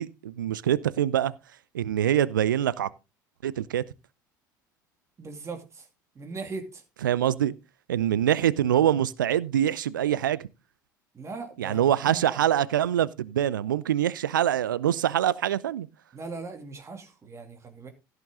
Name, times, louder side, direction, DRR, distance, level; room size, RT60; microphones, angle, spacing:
voice 1, 0.0-1.3 1.7-2.9 3.4-3.8 7.0-7.5 7.9-10.4 11.6-15.9, right 11 dB, 75° right, 0.6 m, -24 dB
voice 2, 5.2-5.8 6.2-6.8 11.1-12.4 16.1-17.9, right 3 dB, 25° right, 2.5 m, -39 dB
16.5 x 6.7 x 3.6 m
figure-of-eight pair, 70°, 11 cm